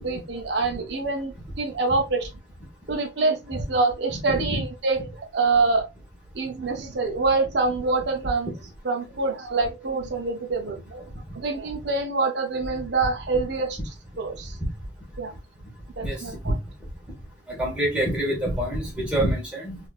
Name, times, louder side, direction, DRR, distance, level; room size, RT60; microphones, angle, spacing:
voice 1, 0.0-2.3 2.9-5.9 6.3-8.5 8.8-11.0 11.3-14.6 15.2-15.3 16.0-16.6, right 3 dB, 65° right, 0.6 m, -26 dB
voice 2, 17.5-19.8, right 1 dB, 5° right, 1.4 m, -26 dB
4.2 x 2.6 x 2.4 m
head